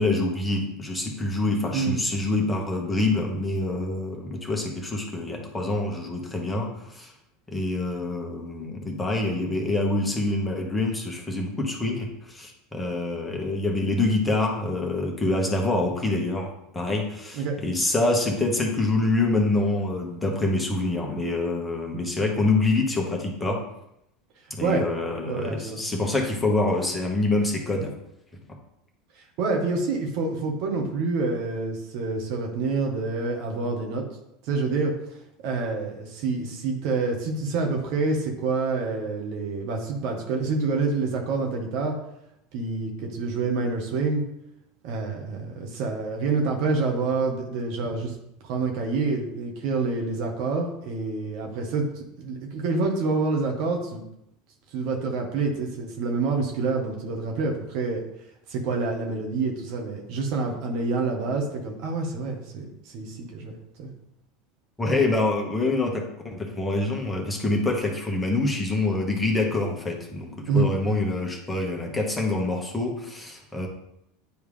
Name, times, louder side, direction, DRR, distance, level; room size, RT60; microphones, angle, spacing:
voice 1, 0.0-7.1 7.5-23.6 24.5-27.9 64.8-73.7, left 2 dB, 10° left, 0 dB, 1.4 m, -26 dB
voice 2, 25.3-25.8 29.2-34.0 34.5-34.9 35.4-42.0 42.5-44.2 44.8-48.2 48.5-54.0 54.7-58.0 58.5-63.5 63.8-63.9 70.5-70.7, right 3 dB, 55° right, 2 dB, 1.3 m, -27 dB
9.5 x 3.3 x 3.3 m, 0.81 s
hypercardioid pair, 80°, 0 cm